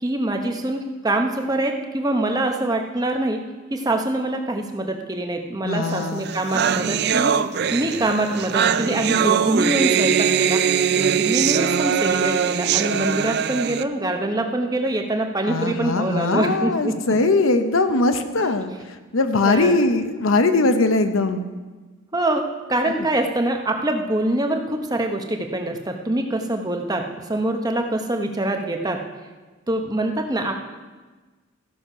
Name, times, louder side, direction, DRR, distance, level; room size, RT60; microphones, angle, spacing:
voice 1, 0.0-3.4 3.7-7.4 7.7-10.6 10.9-17.0 19.2-19.7 22.1-22.4 22.7-29.0 29.7-30.5, right 1 dB, 20° right, 4 dB, 0.8 m, -24 dB
voice 2, 5.6-6.2 15.5-18.7 19.1-21.5 22.9-23.0, left 3 dB, 75° left, 9 dB, 0.8 m, -20 dB
sound 1, 6.0-6.1 6.2-13.8, right 7 dB, 50° right, 0.4 m, -21 dB
14.0 x 6.5 x 5.5 m, 1.3 s
head